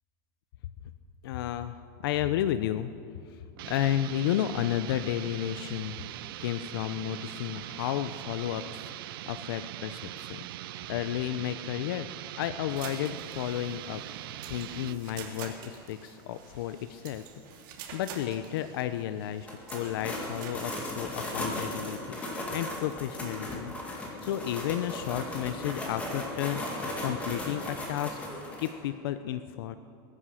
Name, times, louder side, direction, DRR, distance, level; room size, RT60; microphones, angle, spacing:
voice 1, 1.2-2.9 3.3-6.0 6.4-12.1 12.4-14.0 14.5-17.2 17.9-22.2 22.5-23.7 24.2-28.2 28.6-29.8, left 11 dB, 85° left, 11 dB, 0.6 m, -32 dB
sound 1, 3.6-15.0, right 15 dB, 85° right, 0.5 m, -41 dB
sound 2, 12.7-20.5, right 7 dB, 65° right, 2.4 m, -47 dB
sound 3, 19.4-28.7, left 1 dB, 10° left, 2.2 m, -36 dB
21.5 x 9.9 x 5.7 m, 2.6 s
supercardioid pair, 170°, 12 cm